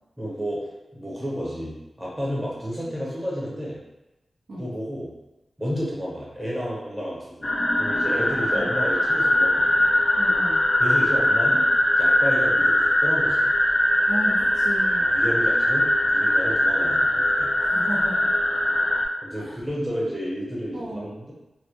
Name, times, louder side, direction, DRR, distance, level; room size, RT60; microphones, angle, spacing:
voice 1, 0.2-0.6 0.9-3.8 4.6-5.1 5.6-7.5 7.8-9.8 10.8-11.6 12.0-13.5 15.0-17.5 19.2-21.3, equal, 5° right, -6 dB, 0.8 m, -31 dB
sound 1, 7.4-19.1, left 1 dB, 40° left, 0.3 m, -21 dB
voice 2, 10.2-10.6 14.1-15.1 17.6-18.3 19.4-19.5 20.7-21.1, right 1 dB, 90° right, -7 dB, 0.5 m, -34 dB
2.1 x 2.0 x 2.9 m, 0.99 s
wide cardioid pair, 100°, 0 cm